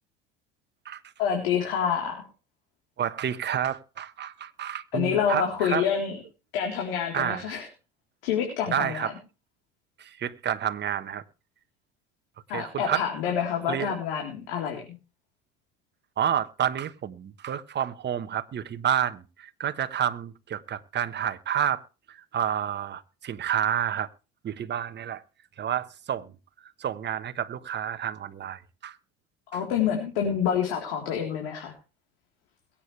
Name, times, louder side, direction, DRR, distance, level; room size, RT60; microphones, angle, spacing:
voice 1, 1.2-2.2 4.9-6.2 6.5-7.7 8.2-9.1 12.5-15.0 29.5-31.7, left 8 dB, 85° left, 3.8 m, -27 dB
voice 2, 3.0-5.9 7.1-7.6 8.7-9.1 10.0-11.2 12.5-13.1 13.7-13.9 16.2-21.8 22.1-24.1 24.4-25.2 25.6-26.3 26.6-29.0 29.5-29.6, right 9 dB, 35° right, 1.3 m, -29 dB
22.5 x 8.7 x 3.3 m
supercardioid pair, 85°, 29 cm